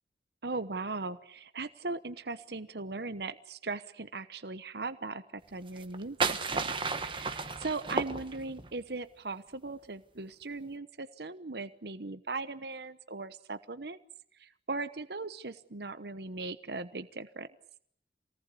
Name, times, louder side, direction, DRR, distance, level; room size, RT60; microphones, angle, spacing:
voice 1, 0.4-6.7 7.0-14.0 14.4-17.5, right 3 dB, 60° right, 12 dB, 1.0 m, -39 dB
sound 1, 5.7-8.7, right 4 dB, 25° right, 1.4 m, -33 dB
27.5 x 19.0 x 8.4 m, 0.65 s
head